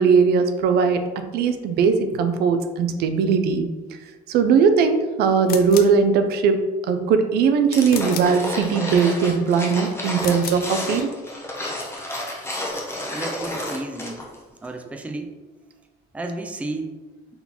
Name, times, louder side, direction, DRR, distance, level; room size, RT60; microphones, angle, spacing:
voice 1, 0.0-3.7 4.3-11.1, right 5 dB, 75° right, 8 dB, 0.4 m, -19 dB
sound 1, 5.4-6.0 7.9-8.4 10.1-10.7, left 7 dB, 60° left, 0.5 m, -33 dB
sound 2, 7.7-14.4 14.6-14.7, left 1 dB, 15° left, 0.9 m, -31 dB
voice 2, 13.1-14.2 14.6-15.4 16.1-17.0, right 2 dB, 10° right, 5 dB, 0.4 m, -32 dB
3.9 x 3.9 x 2.9 m, 1.2 s
cardioid pair, 110°, 17 cm